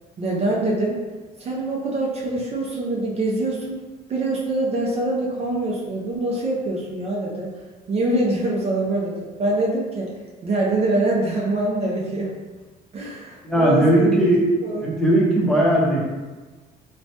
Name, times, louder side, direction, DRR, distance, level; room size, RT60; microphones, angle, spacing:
voice 1, 0.2-1.0 1.4-3.8 4.1-7.5 7.9-10.1 10.4-12.3 12.9-14.3 14.6-14.9, right 2 dB, 40° right, -3 dB, 0.5 m, -24 dB
voice 2, 13.4-14.4 14.8-16.1, right 1 dB, 5° left, -6 dB, 0.7 m, -18 dB
3.1 x 2.1 x 2.8 m, 1.3 s
cardioid pair, 110°, 17 cm